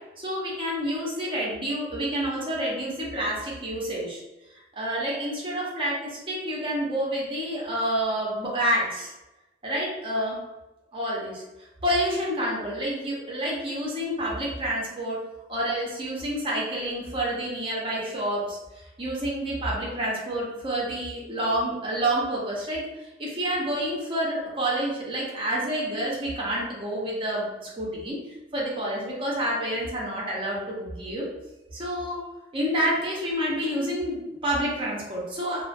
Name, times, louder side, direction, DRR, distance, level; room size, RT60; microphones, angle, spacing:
voice 1, 0.2-4.2 4.8-9.1 9.6-10.4 10.9-11.4 11.8-15.2 15.5-18.6 19.0-22.8 23.2-28.2 28.5-31.3 31.7-32.2 32.5-35.6, right 1 dB, 30° right, -4 dB, 0.7 m, -28 dB
2.4 x 2.1 x 2.5 m, 1.0 s
head